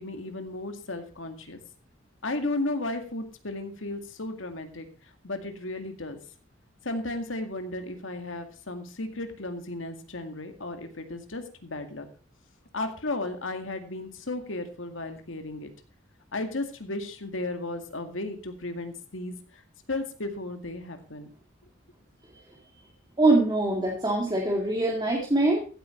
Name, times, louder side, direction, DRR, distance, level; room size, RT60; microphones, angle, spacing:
voice 1, 0.0-1.6 2.2-4.9 5.2-6.2 6.8-12.1 12.7-15.7 16.3-19.6 19.9-21.3, left 2 dB, 75° left, 7 dB, 2.1 m, -34 dB
voice 2, 23.2-25.7, right 2 dB, 20° right, -1 dB, 2.1 m, -23 dB
15.0 x 8.5 x 4.4 m, 0.38 s
head